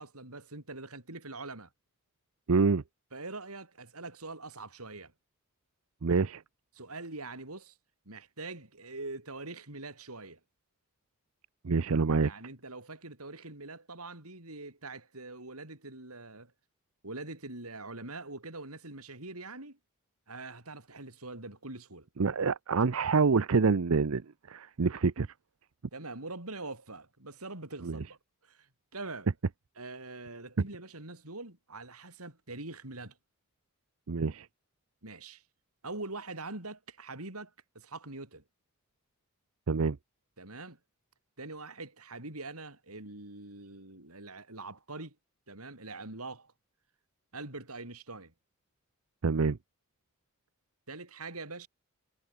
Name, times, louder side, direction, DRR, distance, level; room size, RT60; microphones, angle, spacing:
voice 1, 0.0-1.7 3.1-5.1 6.7-7.8 8.1-10.4 12.2-16.5 17.0-19.8 20.3-22.1 25.9-28.2 28.4-29.3 29.8-33.2 35.0-35.4 35.8-38.4 40.4-40.8 41.4-45.2 45.5-46.5 47.3-48.3 50.9-51.7, right 2 dB, 85° right, 5.8 m, -43 dB
voice 2, 2.5-2.8 6.0-6.4 11.6-12.3 22.2-24.2 24.5-25.3 27.9-28.0 34.1-34.5 39.7-40.0 49.2-49.6, right 4 dB, 70° right, 0.6 m, -26 dB
head